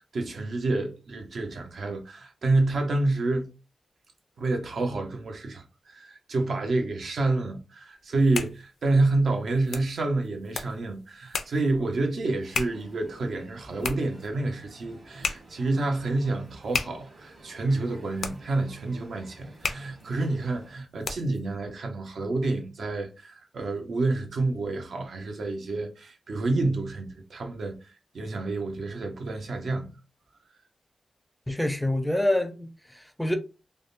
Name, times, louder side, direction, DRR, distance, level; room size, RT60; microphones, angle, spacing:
voice 1, 0.0-3.5 4.4-27.8 28.1-29.9, right 2 dB, 75° right, 0.7 m, -28 dB
sound 1, 8.0-21.5, left 5 dB, 75° left, 0.4 m, -37 dB
Crowd, 12.4-20.7, right 2 dB, 50° right, 1.3 m, -51 dB
voice 2, 31.5-33.4, left 1 dB, ahead, 0.4 m, -27 dB
3.4 x 2.1 x 2.5 m
wide cardioid pair, 120°, 0 cm